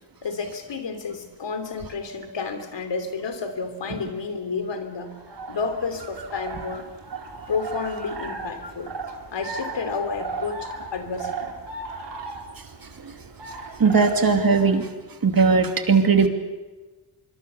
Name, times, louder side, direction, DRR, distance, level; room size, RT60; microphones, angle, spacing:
voice 1, 0.2-5.1 5.5-6.8 7.5-8.9 9.3-11.5, left 4 dB, 80° left, 8 dB, 3.2 m, -30 dB
sound 1, 5.1-14.8, right 4 dB, 75° right, 4.2 m, -36 dB
voice 2, 13.8-14.9 15.2-16.3, right 5 dB, 55° right, 5 dB, 2.7 m, -18 dB
25.5 x 24.0 x 7.0 m, 1.2 s
wide cardioid pair, 110°, 43 cm